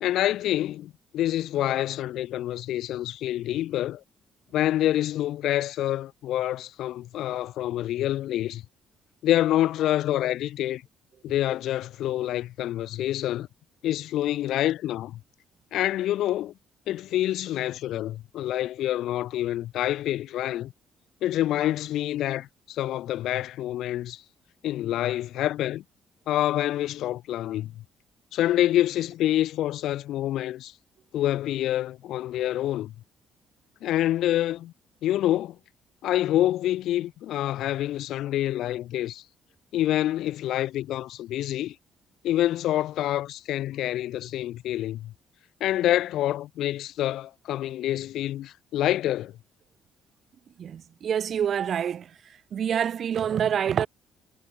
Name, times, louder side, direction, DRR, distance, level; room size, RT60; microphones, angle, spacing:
voice 1, 0.0-4.0 4.5-8.6 9.2-10.8 11.2-13.5 13.8-15.2 15.7-16.5 16.9-20.7 21.2-24.2 24.6-25.8 26.3-27.7 28.3-30.7 31.1-32.9 33.8-34.7 35.0-35.6 36.0-39.2 39.7-41.7 42.2-45.1 45.6-49.3, left 13 dB, 75° left, 1.1 m, -27 dB
voice 2, 50.6-52.1 52.5-53.9, right 8 dB, 60° right, 1.8 m, -26 dB
supercardioid pair, 65°, 0 cm